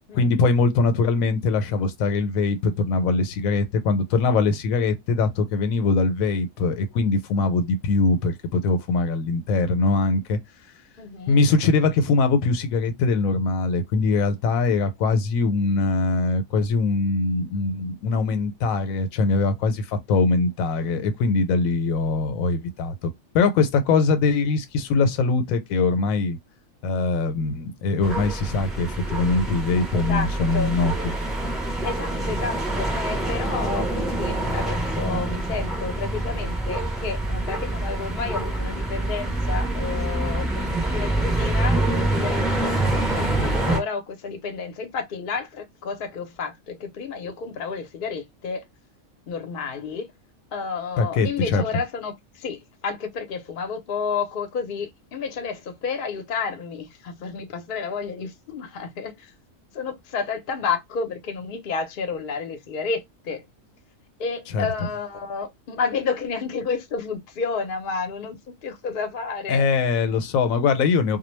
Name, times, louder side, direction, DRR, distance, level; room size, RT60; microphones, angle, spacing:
voice 1, 0.1-10.4 11.3-26.4 26.8-30.9 51.0-51.6 64.5-64.7 69.5-71.2, left 3 dB, 85° left, 1.0 m, -22 dB
voice 2, 11.0-11.4 29.9-30.7 31.8-42.8 43.1-48.6 49.3-50.1 50.5-59.3 59.7-63.5 64.2-69.6, left 5 dB, 50° left, 0.7 m, -31 dB
sound 1, 28.0-43.8, right 1 dB, ahead, 0.4 m, -26 dB
2.2 x 2.1 x 3.1 m
omnidirectional pair, 1.4 m